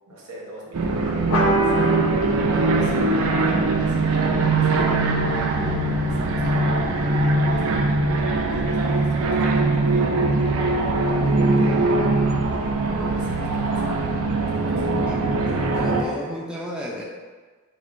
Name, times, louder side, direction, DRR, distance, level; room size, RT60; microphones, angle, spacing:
voice 1, 0.1-2.0 2.5-4.8 5.2-12.0 12.9-14.2 14.5-16.4, right 1 dB, 90° right, -3 dB, 1.0 m, -40 dB
sound 1, 0.7-16.0, right 2 dB, 70° right, 0.4 m, -21 dB
sound 2, 1.3-6.2, equal, 75° left, 0.8 m, -28 dB
voice 2, 15.1-17.0, equal, 5° right, -4 dB, 0.4 m, -34 dB
6.4 x 2.1 x 2.5 m, 1.4 s
head